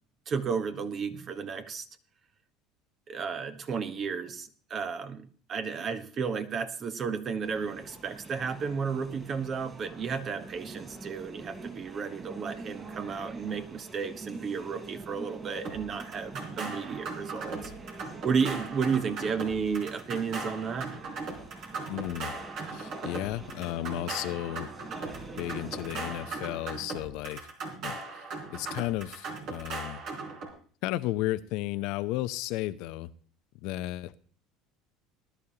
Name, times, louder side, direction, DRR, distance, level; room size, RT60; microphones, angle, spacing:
voice 1, 0.3-1.9 3.1-17.7 18.2-21.0, right 6 dB, 40° right, 10 dB, 1.4 m, -33 dB
sound 1, 7.4-26.4, right 3 dB, 25° right, 5.1 m, -45 dB
sound 2, 15.6-30.5, right 3 dB, 60° right, 3.9 m, -39 dB
voice 2, 21.9-22.4 22.7-24.7 25.4-27.4 27.8-28.0 28.5-30.0 30.8-33.1 33.6-34.2, left 16 dB, 70° left, 14 dB, 0.6 m, -33 dB
19.5 x 11.5 x 2.9 m, 0.44 s
supercardioid pair, 90°, 0 cm